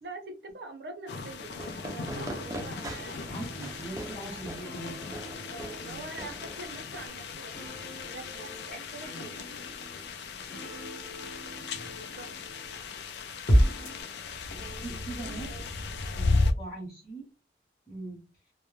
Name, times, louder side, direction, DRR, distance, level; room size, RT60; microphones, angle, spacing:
voice 1, 0.0-3.2 5.5-9.4 11.9-12.3 14.5-15.7, right 2 dB, 60° right, 0.6 m, -45 dB
sound 1, 1.1-16.5, left 3 dB, 70° left, 0.4 m, -36 dB
Fireworks, 1.5-7.1, right 1 dB, 20° right, 0.3 m, -42 dB
sound 2, 1.9-12.8 13.5-14.0, equal, 50° left, 0.8 m, -34 dB
voice 2, 3.3-5.0 5.8-6.1 9.1-9.3 14.5-15.5 16.1-17.2 17.9-18.3, right 2 dB, 20° left, 0.8 m, -41 dB
2.1 x 2.1 x 3.1 m
head